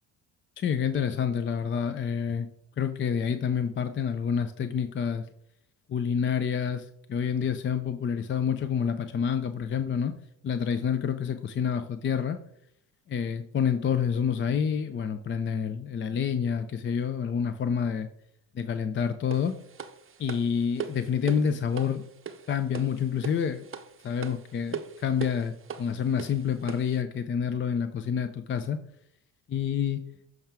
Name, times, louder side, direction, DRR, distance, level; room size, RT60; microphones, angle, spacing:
voice 1, 0.6-2.5 2.8-5.2 5.9-10.1 10.4-12.4 13.1-18.1 18.5-19.6 20.2-22.0 22.5-23.6 24.0-28.8 29.5-30.0, left 7 dB, 25° left, 10 dB, 0.4 m, -28 dB
sound 1, 19.3-27.0, right 7 dB, 25° right, 0.7 m, -40 dB
7.2 x 4.6 x 3.5 m, 0.73 s
hypercardioid pair, 60°, 48 cm